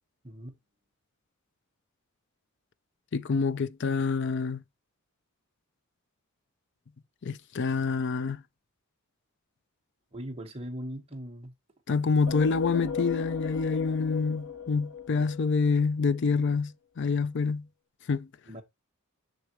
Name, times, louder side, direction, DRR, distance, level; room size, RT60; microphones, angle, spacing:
voice 1, 0.2-0.6 10.1-11.5 18.5-18.6, equal, 25° right, 1.4 m, -39 dB
voice 2, 3.1-4.6 7.2-8.4 11.9-17.7 18.1-18.3, left 4 dB, 50° left, 0.4 m, -27 dB
sound 1, 12.3-15.9, left 6 dB, 85° left, 2.3 m, -36 dB
6.8 x 6.7 x 3.0 m
head